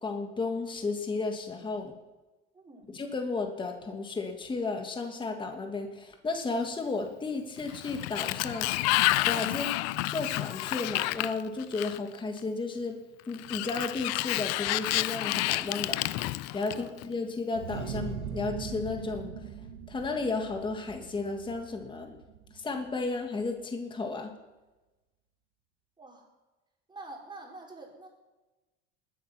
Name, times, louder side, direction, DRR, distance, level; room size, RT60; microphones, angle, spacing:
voice 1, 0.0-1.9 2.9-8.7 9.3-9.7 10.1-13.0 13.3-19.3 19.9-22.2 22.5-24.3, left 3 dB, 15° left, 4 dB, 1.6 m, -33 dB
voice 2, 2.5-3.0 16.7-16.9 26.0-26.3 26.9-28.1, right 2 dB, 15° right, -1 dB, 4.0 m, -46 dB
Sliding door, 7.6-12.2 13.3-17.0, left 18 dB, 60° left, 0.5 m, -30 dB
sound 1, 17.5-23.1, right 7 dB, 80° right, 2.0 m, -40 dB
20.5 x 8.3 x 5.9 m, 1.1 s
cardioid pair, 130°, 30 cm